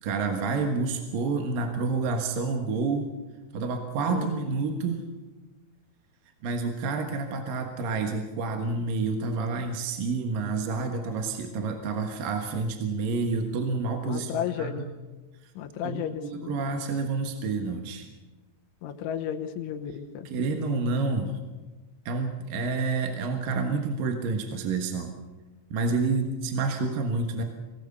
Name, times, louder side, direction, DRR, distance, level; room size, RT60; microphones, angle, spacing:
voice 1, 0.0-3.1 3.5-5.0 6.4-14.3 14.6-14.8 15.8-18.1 20.2-21.4 22.1-25.1 25.7-27.4, right 4 dB, 60° right, 4 dB, 2.7 m, -29 dB
voice 2, 14.0-14.9 15.6-16.5 18.8-20.3, left 9 dB, 90° left, 5 dB, 3.6 m, -33 dB
24.5 x 18.0 x 6.8 m, 1.2 s
omnidirectional pair, 5.3 m